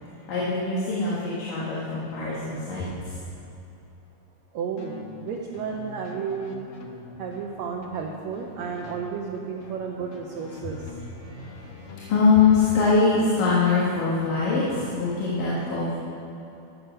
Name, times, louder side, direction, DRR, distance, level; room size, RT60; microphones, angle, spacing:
voice 1, 0.1-3.2 10.6-10.7 11.2-16.0, left 4 dB, 85° left, -8 dB, 3.2 m, -23 dB
voice 2, 4.5-6.7 7.2-10.9, right 6 dB, 75° right, 0 dB, 1.7 m, -32 dB
sound 1, 4.8-12.9, left 3 dB, 70° left, 1.5 m, -44 dB
13.0 x 7.2 x 5.5 m, 3.0 s
omnidirectional pair, 3.8 m